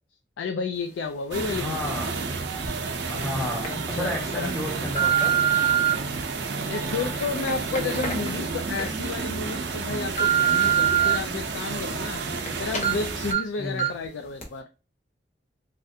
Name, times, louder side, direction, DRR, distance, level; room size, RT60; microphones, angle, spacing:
voice 1, 0.4-1.9 3.7-4.5 6.7-12.2 12.6-14.6, left 4 dB, 85° left, 0.3 m, -31 dB
sound 1, 1.3-13.3, right 4 dB, 70° right, 0.5 m, -31 dB
voice 2, 1.5-2.2 3.1-5.4 13.6-13.9, left 1 dB, 5° left, 0.5 m, -32 dB
sound 2, 2.6-2.7 3.4-3.7 4.3-5.9 6.6-8.9 9.3-9.4 9.8-11.1 11.6-12.5 12.7-12.9 13.3-13.4 13.8-14.1 14.4-14.5, right 9 dB, 40° left, 0.8 m, -25 dB
3.3 x 2.4 x 2.7 m
head